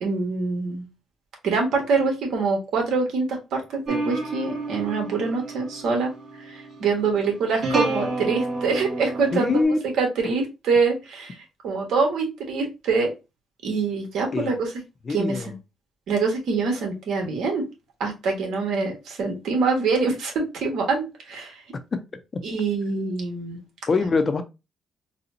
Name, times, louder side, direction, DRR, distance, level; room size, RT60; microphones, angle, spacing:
voice 1, 0.0-0.9 1.4-6.1 6.4-11.4 11.6-13.1 13.6-14.7 15.1-15.5 16.1-17.6 18.0-21.6 22.4-23.6, right 4 dB, 75° right, 1.4 m, -25 dB
sound 1, 3.9-9.6, right 2 dB, 55° right, 2.0 m, -30 dB
voice 2, 9.3-9.8 14.3-14.5 15.1-15.5 23.9-24.4, left 4 dB, 40° left, 0.6 m, -23 dB
4.1 x 2.3 x 2.8 m
cardioid pair, 90°, 0 cm